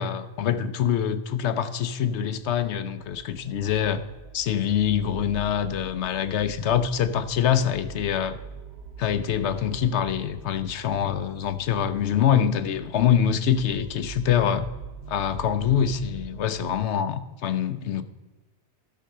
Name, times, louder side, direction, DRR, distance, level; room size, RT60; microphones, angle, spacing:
voice 1, 0.0-4.0 4.3-8.4 9.0-14.7 15.1-18.0, left 9 dB, 85° left, 1.0 m, -25 dB
sound 1, 2.3-16.7, right 7 dB, 70° right, 1.1 m, -43 dB
12.0 x 5.5 x 6.4 m
omnidirectional pair, 1.1 m